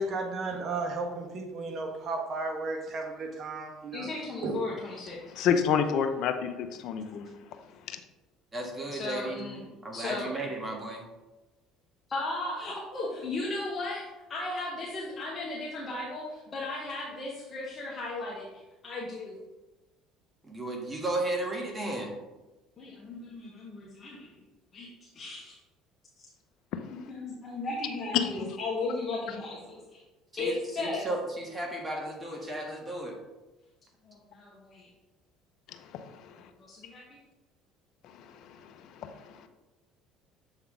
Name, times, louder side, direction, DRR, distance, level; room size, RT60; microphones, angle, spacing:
voice 1, 0.0-4.1 4.4-4.5, right 2 dB, 45° right, 2 dB, 1.3 m, -34 dB
voice 2, 3.9-5.2 8.9-9.6 9.9-10.3 12.1-18.5 18.8-19.4 22.8-24.4 24.7-25.6 26.2-26.3 27.1-30.0 30.4-31.1 34.0-34.9 36.6-37.0, left 2 dB, 35° left, -5 dB, 1.3 m, -36 dB
voice 3, 5.3-7.3 7.9-8.0 26.7-26.8 28.1-28.3 35.7-36.5 38.0-39.5, left 7 dB, 65° left, 8 dB, 0.6 m, -30 dB
voice 4, 8.5-9.5 9.8-11.0 20.4-22.1 30.3-33.2, right 1 dB, 20° right, 1 dB, 1.6 m, -34 dB
7.1 x 3.6 x 3.7 m, 1.1 s
supercardioid pair, 80°, 0 cm